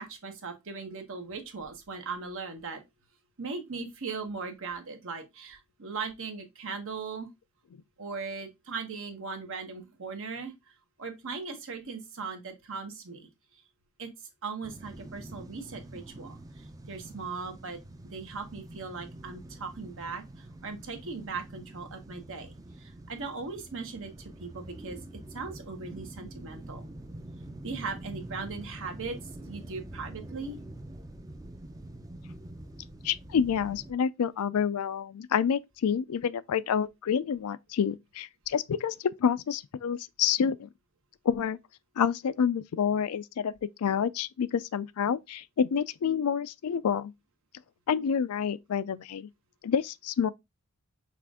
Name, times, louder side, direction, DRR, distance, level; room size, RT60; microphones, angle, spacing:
voice 1, 0.0-2.8 3.4-7.3 8.0-10.7 11.0-13.3 14.0-17.8 18.0-25.0 25.3-26.9 27.6-30.6, right 4 dB, 65° right, 1.2 m, -39 dB
sound 1, 14.6-33.9, right 1 dB, 15° right, 0.5 m, -45 dB
voice 2, 33.0-40.7 41.2-41.6 42.0-47.1 47.9-49.3 49.6-50.3, left 7 dB, 75° left, 0.4 m, -28 dB
5.9 x 2.5 x 3.5 m
head